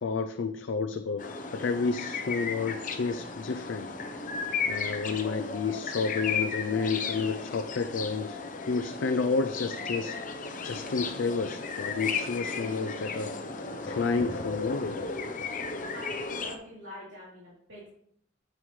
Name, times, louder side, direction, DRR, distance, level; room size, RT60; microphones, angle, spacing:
voice 1, 0.0-3.9 4.7-8.4 8.7-10.2 10.6-15.0, left 4 dB, 80° left, 8 dB, 0.5 m, -31 dB
sound 1, 1.2-16.6, left 4 dB, 45° left, 0.8 m, -35 dB
voice 2, 15.9-17.9, equal, 80° right, -9 dB, 3.3 m, -45 dB
9.3 x 7.8 x 3.2 m, 0.72 s
head